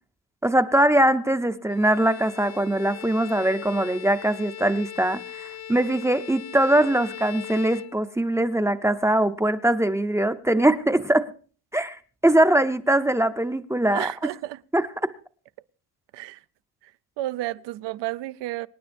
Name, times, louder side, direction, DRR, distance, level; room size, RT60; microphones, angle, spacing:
voice 1, 0.4-11.3 11.7-14.1 14.7-15.1, right 1 dB, 5° right, 0.5 m, -22 dB
Bowed string instrument, 1.7-8.5, left 11 dB, 40° left, 0.7 m, -40 dB
voice 2, 13.9-14.6 16.1-16.4 17.2-18.7, right 16 dB, 90° right, 0.6 m, -31 dB
26.0 x 10.0 x 2.5 m
cardioid pair, 145°, 41 cm